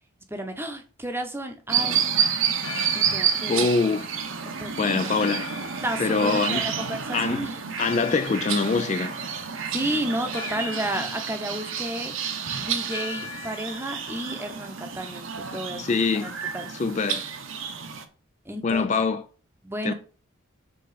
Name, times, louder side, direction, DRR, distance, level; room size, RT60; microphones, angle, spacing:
voice 1, 0.3-2.0 2.9-3.7 4.4-4.9 5.8-7.5 9.7-12.1 12.6-15.9 16.2-16.7 18.5-18.9 19.6-19.9, right 1 dB, 10° right, 0.8 m, -32 dB
sound 1, 1.7-18.1, right 7 dB, 60° right, 0.9 m, -30 dB
Church bell, 2.5-15.2, left 5 dB, 70° left, 1.5 m, -43 dB
voice 2, 3.5-4.1 4.8-5.5 6.0-6.7 7.1-7.5 7.8-9.1 15.7-16.4 16.7-17.2 18.6-19.2 19.8-19.9, left 4 dB, 35° left, 0.3 m, -24 dB
6.8 x 3.7 x 4.9 m
head